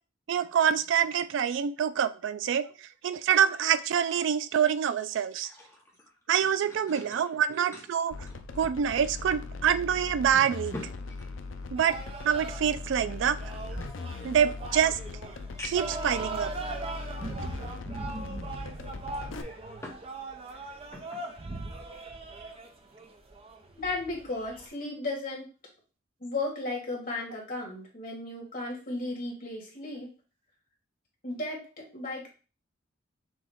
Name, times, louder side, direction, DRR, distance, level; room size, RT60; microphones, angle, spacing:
voice 1, 0.3-2.7 3.0-5.5 6.3-8.1 8.6-10.8 11.7-12.0 12.2-13.4 14.2-15.0 15.6-16.5, right 8 dB, 65° right, 13 dB, 0.3 m, -26 dB
sound 1, 5.1-9.2 9.5-9.6 10.2-12.2 13.0-14.5 15.0-15.1 15.6-16.0 16.8-16.9 19.1-20.1 20.4-21.3 21.7-21.9, left 2 dB, 15° left, 0.9 m, -47 dB
sound 2, 8.1-19.4, left 3 dB, 75° left, 0.5 m, -40 dB
sound 3, 11.7-24.7, right 2 dB, 30° right, 0.6 m, -39 dB
voice 2, 23.8-25.5 26.2-30.1 31.2-32.3, left 2 dB, 45° left, -2 dB, 1.8 m, -35 dB
6.1 x 2.3 x 3.5 m, 0.35 s
head